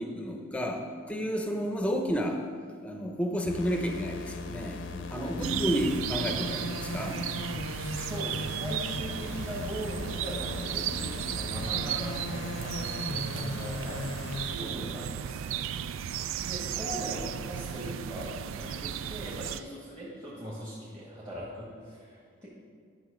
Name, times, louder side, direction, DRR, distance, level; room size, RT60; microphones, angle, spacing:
voice 1, 0.0-2.4 2.8-7.5 8.0-8.1, equal, 5° left, 3 dB, 0.8 m, -31 dB
sound 1, 3.4-14.6, left 2 dB, 65° left, 0.6 m, -38 dB
sound 2, 5.4-19.6, right 9 dB, 80° right, 0.3 m, -35 dB
voice 2, 7.8-14.2 14.5-22.5, equal, 20° right, -8 dB, 1.9 m, -40 dB
11.5 x 6.0 x 5.0 m, 2.1 s
head